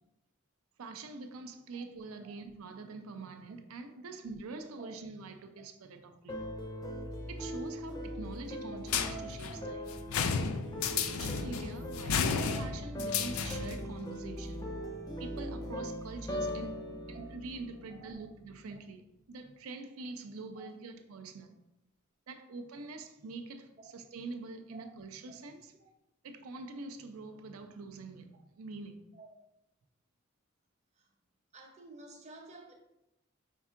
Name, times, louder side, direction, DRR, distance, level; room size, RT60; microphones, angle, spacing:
voice 1, 0.8-6.5 7.3-9.9 10.8-14.7 15.2-21.6 22.3-25.7 26.2-29.0, right 3 dB, 80° right, 7 dB, 0.5 m, -45 dB
sound 1, 6.3-18.4, equal, 15° left, 0.5 m, -40 dB
sound 2, 8.9-13.9, left 6 dB, 75° left, 0.4 m, -33 dB
voice 2, 31.5-32.7, right 3 dB, 30° right, 1 dB, 0.7 m, -52 dB
5.4 x 3.5 x 2.4 m, 0.87 s
head